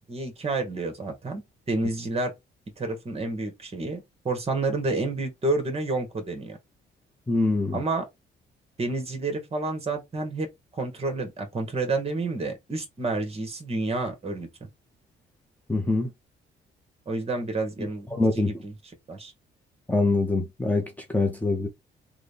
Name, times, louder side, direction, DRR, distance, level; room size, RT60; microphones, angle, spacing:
voice 1, 0.0-1.4 1.7-2.3 2.8-6.6 7.7-8.1 8.8-14.7 17.1-18.1 18.3-18.7 19.1-19.3, right 2 dB, 30° right, 1.6 m, -29 dB
voice 2, 7.3-7.8 15.7-16.1 18.1-18.5 19.9-21.7, left 2 dB, 10° left, 0.8 m, -24 dB
3.7 x 2.3 x 3.4 m
cardioid pair, 90°, 20 cm